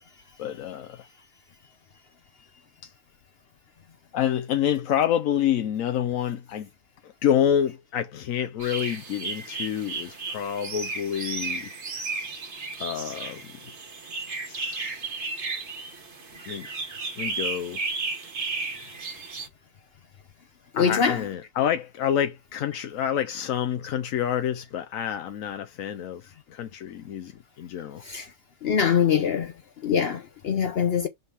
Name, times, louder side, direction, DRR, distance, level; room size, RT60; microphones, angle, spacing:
voice 1, 0.4-1.1 2.8-2.9 4.1-6.7 7.0-11.7 12.8-13.6 14.5-14.9 16.5-16.7 17.2-17.8 20.7-28.0, left 9 dB, 90° left, 1.1 m, -28 dB
sound 1, 8.6-19.5, right 3 dB, 60° right, 1.5 m, -34 dB
voice 2, 20.7-21.2 28.0-28.3 28.6-29.5 29.8-31.1, left 7 dB, 60° left, 0.8 m, -23 dB
5.6 x 5.3 x 3.3 m
omnidirectional pair, 1.4 m